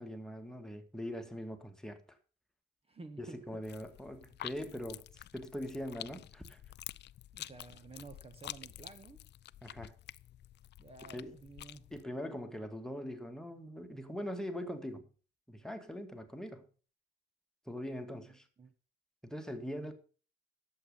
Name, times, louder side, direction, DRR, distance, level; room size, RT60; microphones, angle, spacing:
voice 1, 0.0-2.0 3.2-6.6 9.6-9.9 11.1-11.4 11.9-15.1 15.5-16.7 17.7-18.5 19.2-19.9, equal, 5° left, 2.1 m, -42 dB
voice 2, 2.9-3.4 7.3-9.2 10.8-11.9 18.1-18.2 18.6-18.7, right 3 dB, 30° right, 1.5 m, -52 dB
sound 1, 3.6-12.0, left 12 dB, 60° left, 0.5 m, -49 dB
11.0 x 7.8 x 5.5 m
cardioid pair, 90°, 20 cm